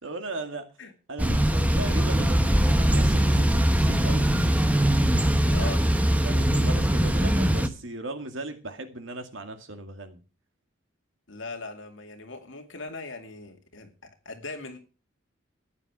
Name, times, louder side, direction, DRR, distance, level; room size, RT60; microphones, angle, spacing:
voice 1, 0.0-0.7 1.1-4.3 5.4-5.8 6.2-10.2, right 2 dB, 70° right, 6 dB, 2.2 m, -37 dB
Thunder / Bicycle, 1.2-7.7, right 1 dB, 5° right, 0.9 m, -22 dB
voice 2, 5.5-5.8 11.3-14.8, left 3 dB, 70° left, 4 dB, 2.4 m, -39 dB
14.5 x 9.9 x 4.8 m, 0.35 s
head